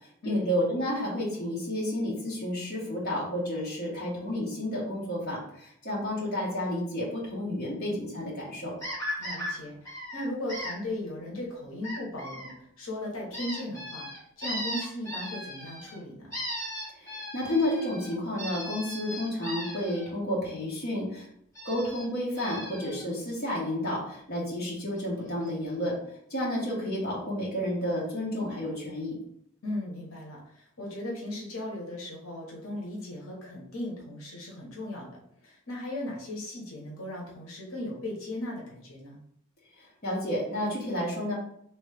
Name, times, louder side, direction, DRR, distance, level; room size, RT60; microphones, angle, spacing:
voice 1, 0.2-8.7 17.0-21.3 21.6-26.0 26.3-29.2 40.0-41.3, left 1 dB, 45° left, -5 dB, 1.2 m, -31 dB
sound 1, 8.8-9.5 9.9-10.7 11.8-12.5 13.3-16.0 16.3-20.1 21.6-22.0 22.4-23.0 25.0-25.1 25.4-25.5 25.8-25.9, equal, 15° left, 1.5 m, -37 dB
voice 2, 9.2-14.1 14.4-16.4 29.6-39.2, left 1 dB, 80° left, -3 dB, 1.1 m, -37 dB
3.1 x 3.1 x 3.4 m, 0.72 s
head